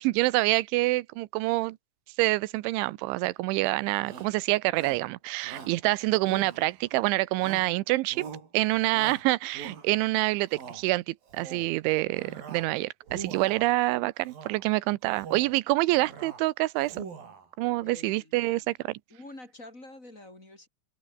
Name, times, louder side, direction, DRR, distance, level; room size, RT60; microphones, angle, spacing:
voice 1, 0.0-1.8 2.2-8.3 8.5-17.1 17.6-18.7, right 20 dB, 85° right, 3.1 m, -26 dB
Shout, 4.0-4.4 4.8-5.1 5.4-5.8 6.3-6.9 7.4-7.8 8.1-8.5 8.9-10.0 10.4-10.8 11.3-11.7 12.1-12.7 13.0-13.7 14.3-14.6 15.1-15.6 15.9-16.4 16.8-17.5, right 6 dB, 50° right, 5.8 m, -43 dB
voice 2, 17.8-18.8 19.1-20.7, left 1 dB, 15° left, 5.3 m, -47 dB
omnidirectional pair, 5.4 m